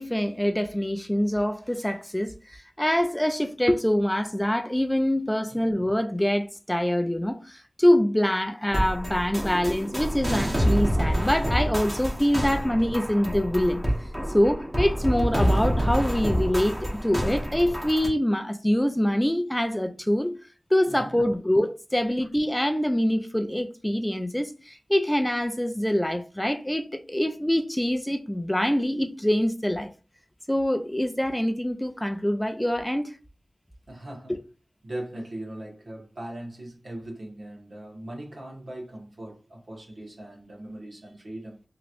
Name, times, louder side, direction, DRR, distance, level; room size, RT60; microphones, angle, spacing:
voice 1, 0.0-13.8 14.3-20.3 20.7-29.9 30.5-33.1 34.3-34.4, equal, 10° left, 0.4 m, -25 dB
sound 1, 8.7-18.1, equal, 15° right, 1.0 m, -27 dB
voice 2, 20.9-21.2 33.9-34.4 34.8-41.6, right 1 dB, 70° right, 1.3 m, -39 dB
3.0 x 2.9 x 2.5 m
wide cardioid pair, 65°, 0 cm